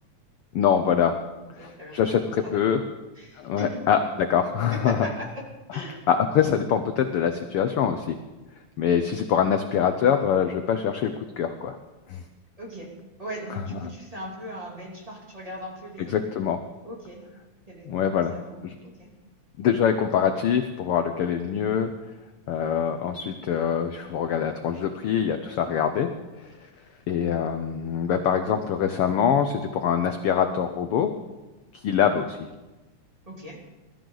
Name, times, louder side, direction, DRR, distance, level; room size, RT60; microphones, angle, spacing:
voice 1, 0.5-1.2 1.6-2.8 3.3-4.0 4.3-5.1 5.7-8.2 8.8-11.8 12.1-12.2 13.7-13.8 16.1-16.6 17.9-18.3 18.6-18.8 19.6-21.9 22.5-26.1 26.4-26.5 27.1-31.1 31.7-32.4, left 8 dB, 80° left, 8 dB, 1.2 m, -24 dB
voice 2, 1.6-2.8 3.1-3.8 4.7-5.4 5.7-6.0 12.6-12.9 13.2-16.2 16.8-17.2 17.7-19.1 33.3-33.6, equal, 10° right, -2 dB, 2.6 m, -39 dB
21.5 x 13.0 x 3.9 m, 1.1 s
omnidirectional pair, 3.4 m